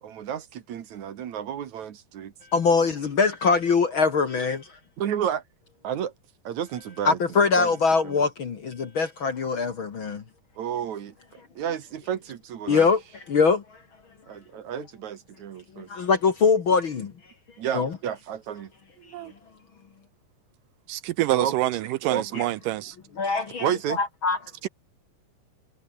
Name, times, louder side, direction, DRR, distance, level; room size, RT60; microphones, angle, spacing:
voice 1, 0.0-2.3 5.0-5.4 5.8-6.1 6.4-7.7 8.0-8.3 10.6-12.9 14.3-15.9 17.6-18.7 21.3-21.6 21.8-22.4 23.6-24.0, right 9 dB, 60° right, 2.8 m, -31 dB
voice 2, 2.5-4.6 7.1-10.2 12.7-13.0 13.3-13.6 15.8-17.1 17.7-17.9 22.4-22.5 23.2-23.7 24.0-24.4, left 4 dB, 45° left, 2.0 m, -22 dB
voice 3, 20.9-23.0 24.6-24.7, right 16 dB, 80° right, 2.3 m, -26 dB
omnidirectional pair, 3.9 m